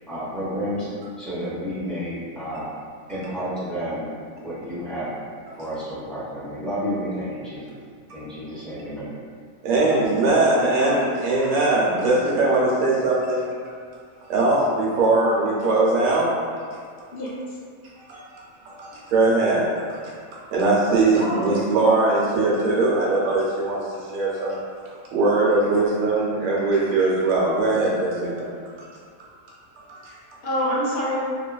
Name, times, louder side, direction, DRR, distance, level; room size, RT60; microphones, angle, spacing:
voice 1, 0.1-0.9 1.2-2.7 3.1-4.1 4.4-5.1 5.5-7.7 8.1-9.1, equal, ahead, -12 dB, 0.5 m, -30 dB
voice 2, 9.6-13.5 14.3-16.3 16.6-16.7 18.1-18.2 18.6-20.0 20.5-24.6 25.1-28.5 29.9-30.0, right 2 dB, 85° right, -5 dB, 1.1 m, -21 dB
voice 3, 10.6-11.0 17.1-17.6 18.9-19.0 21.2-21.6 30.1-31.2, equal, 60° left, -6 dB, 0.7 m, -28 dB
2.8 x 2.3 x 2.3 m, 2.1 s
omnidirectional pair, 1.4 m